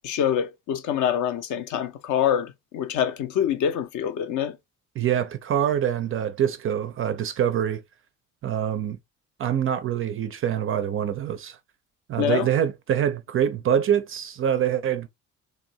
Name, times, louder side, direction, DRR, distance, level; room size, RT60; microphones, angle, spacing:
voice 1, 0.0-4.6 12.2-12.5, left 9 dB, 45° left, 0.5 m, -25 dB
voice 2, 5.0-7.8 8.4-9.0 9.4-11.6 12.1-15.1, right 9 dB, 30° right, 0.4 m, -25 dB
3.3 x 2.6 x 2.7 m
figure-of-eight pair, 50°, 43 cm